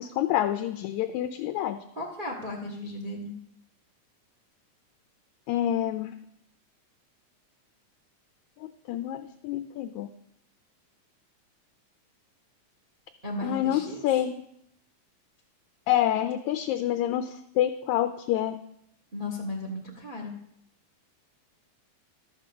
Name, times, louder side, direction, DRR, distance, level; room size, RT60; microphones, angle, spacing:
voice 1, 0.0-1.8 5.5-6.2 8.6-10.1 13.4-14.3 15.9-18.6, left 12 dB, 80° left, 9 dB, 1.8 m, -27 dB
voice 2, 1.9-3.4 13.2-14.0 19.1-20.3, left 1 dB, 25° right, 1 dB, 1.1 m, -35 dB
12.5 x 6.2 x 6.9 m, 0.75 s
omnidirectional pair, 3.7 m